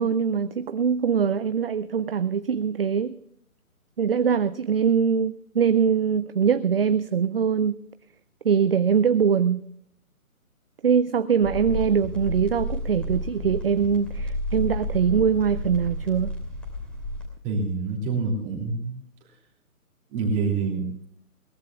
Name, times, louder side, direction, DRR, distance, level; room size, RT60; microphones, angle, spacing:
voice 1, 0.0-3.1 4.0-7.7 8.4-9.6 10.8-16.3, right 7 dB, 45° right, 11 dB, 0.5 m, -22 dB
sound 1, 11.4-17.3, left 1 dB, ahead, 2.8 m, -31 dB
voice 2, 17.4-18.9 20.1-21.1, right 4 dB, 15° right, 1 dB, 2.8 m, -26 dB
21.5 x 18.0 x 2.3 m, 0.69 s
figure-of-eight pair, 150°, 44 cm